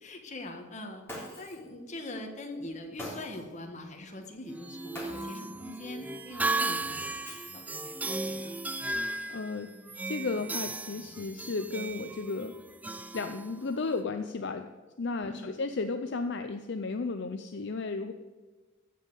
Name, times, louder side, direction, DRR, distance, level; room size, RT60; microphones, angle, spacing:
voice 1, 0.0-8.5 15.2-15.6, left 1 dB, 35° left, 3 dB, 1.6 m, -43 dB
Shatter, 1.1-1.7 3.0-3.5 4.9-5.5 7.2-7.9, left 1 dB, 10° left, 3.5 m, -43 dB
sound 1, 4.5-14.0, right 2 dB, 10° right, 0.3 m, -36 dB
voice 2, 9.3-9.7 10.1-12.6 13.1-14.7 15.0-18.1, left 3 dB, 60° left, 7 dB, 0.6 m, -34 dB
sound 2, 10.1-13.1, equal, 80° right, 1.4 m, -60 dB
15.0 x 5.5 x 8.2 m, 1.3 s
head